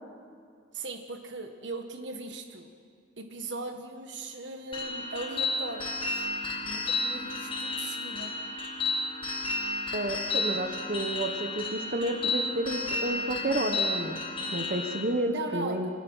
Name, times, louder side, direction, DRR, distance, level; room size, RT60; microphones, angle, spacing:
voice 1, 0.7-2.7 3.2-6.3 6.6-8.3 15.3-15.8, right 3 dB, 65° right, 5 dB, 1.5 m, -39 dB
sound 1, 4.7-15.0, left 3 dB, 25° left, 1.8 m, -32 dB
voice 2, 9.9-14.2 14.5-15.9, right 1 dB, 45° right, 5 dB, 1.3 m, -30 dB
24.5 x 19.0 x 5.8 m, 2.3 s
head